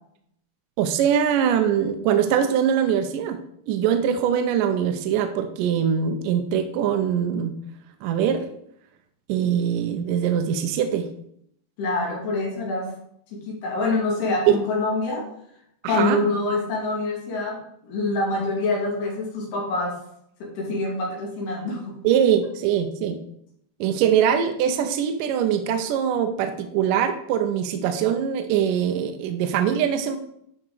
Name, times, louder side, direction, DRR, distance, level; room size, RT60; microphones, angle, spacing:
voice 1, 0.8-3.4 3.7-7.6 8.0-8.5 9.3-11.1 14.5-14.6 15.8-16.2 22.0-23.2 23.8-30.2, right 8 dB, 75° right, 7 dB, 2.0 m, -22 dB
voice 2, 11.8-12.9 13.5-15.3 15.8-20.0 20.4-21.9, left 2 dB, 80° left, -1 dB, 4.2 m, -25 dB
11.5 x 5.1 x 4.7 m, 0.70 s
omnidirectional pair, 4.5 m